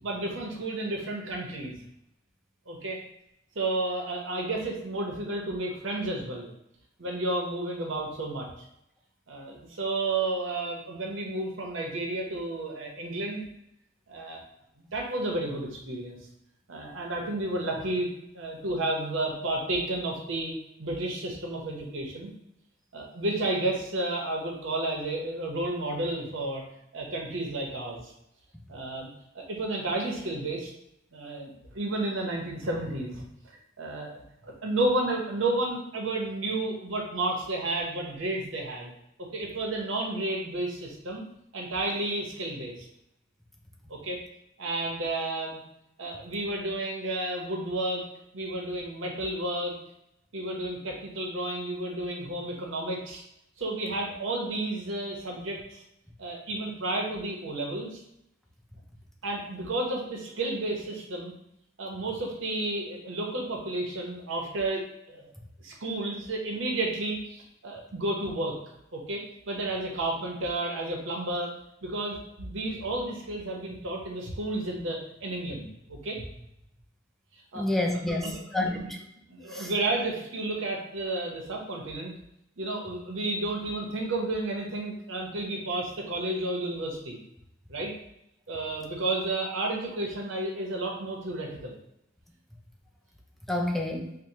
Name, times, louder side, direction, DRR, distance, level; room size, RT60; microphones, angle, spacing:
voice 1, 0.0-1.8 2.7-3.0 3.5-6.5 7.0-8.5 9.3-13.5 14.1-14.4 14.8-16.2 16.7-18.1 18.3-22.3 22.9-26.6 26.9-28.1 28.7-29.1 29.3-30.7 31.1-34.1 34.4-38.9 39.2-41.2 41.5-42.7 43.9-44.2 44.6-45.6 46.0-48.0 48.3-49.8 50.3-53.2 53.6-55.8 56.2-58.0 59.2-61.3 61.8-65.3 65.6-68.6 68.9-71.5 71.8-76.4 77.5-77.7 78.1-78.3 78.6-78.9 79.3-82.1 82.6-87.2 87.7-87.9 88.5-91.8, right 2 dB, 70° right, 0 dB, 0.8 m, -32 dB
voice 2, 77.5-79.0 79.5-79.7 93.5-94.1, left 1 dB, ahead, 0 dB, 0.4 m, -29 dB
4.5 x 2.2 x 2.7 m, 0.79 s
head